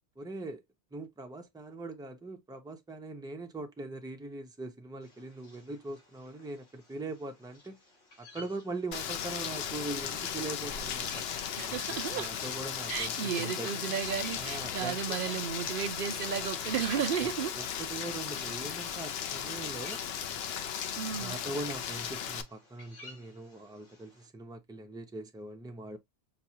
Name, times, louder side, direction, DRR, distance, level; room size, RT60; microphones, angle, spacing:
voice 1, 0.2-0.6 0.9-7.8 8.2-11.2 11.6-11.8 12.1-13.7 14.4-15.0 17.2-17.3 17.5-20.0 21.2-26.0, right 2 dB, 5° right, 0.3 m, -41 dB
sound 1, 5.0-24.3, left 2 dB, 80° left, 1.7 m, -57 dB
Rain, 8.9-22.4, left 8 dB, 65° left, 0.8 m, -36 dB
voice 2, 11.6-12.3 12.9-17.5 21.0-21.4, right 8 dB, 60° right, 0.6 m, -33 dB
6.0 x 2.3 x 2.7 m
omnidirectional pair, 1.2 m